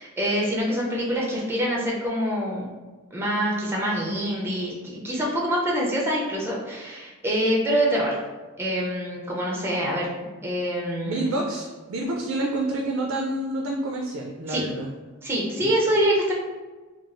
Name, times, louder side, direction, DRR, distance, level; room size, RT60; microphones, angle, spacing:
voice 1, 0.0-2.7 3.1-8.2 8.6-11.3 14.5-14.6 15.2-16.3, equal, 10° right, -3 dB, 0.5 m, -25 dB
voice 2, 11.1-14.9 15.6-15.7, right 2 dB, 75° right, 0 dB, 0.3 m, -28 dB
3.0 x 2.3 x 2.5 m, 1.3 s
head